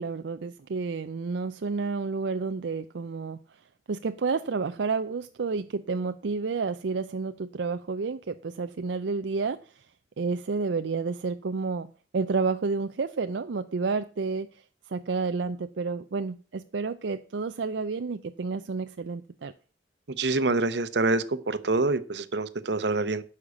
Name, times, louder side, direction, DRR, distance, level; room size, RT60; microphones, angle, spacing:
voice 1, 0.0-3.4 3.9-9.8 10.2-19.5, right 4 dB, 85° right, 0.5 m, -30 dB
voice 2, 20.2-23.2, right 3 dB, 70° right, 0.9 m, -26 dB
9.9 x 5.7 x 8.1 m
head